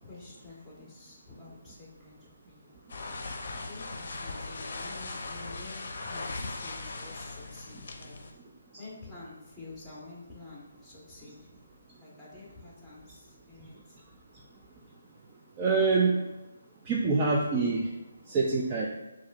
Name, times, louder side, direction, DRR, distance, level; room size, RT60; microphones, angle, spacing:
voice 1, 0.0-2.7 3.6-8.1 8.8-11.3 12.0-14.0, left 3 dB, 5° left, -6 dB, 1.2 m, -49 dB
sound 1, 2.9-8.3, left 3 dB, 50° left, 0.6 m, -39 dB
voice 2, 15.6-16.2 16.8-17.9 18.3-18.9, right 4 dB, 20° right, -3 dB, 0.4 m, -25 dB
6.6 x 2.6 x 2.5 m, 1.0 s
figure-of-eight pair, 150°, 0 cm